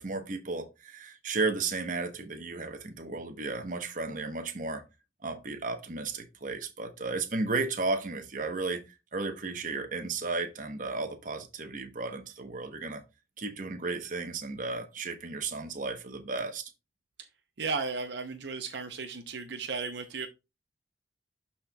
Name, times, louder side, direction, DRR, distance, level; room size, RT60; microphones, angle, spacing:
voice 1, 0.0-4.8 5.2-13.0 13.4-16.7, right 3 dB, 45° right, 0.9 m, -34 dB
voice 2, 17.6-20.3, right 4 dB, 70° right, 0.7 m, -34 dB
12.0 x 4.3 x 2.2 m
head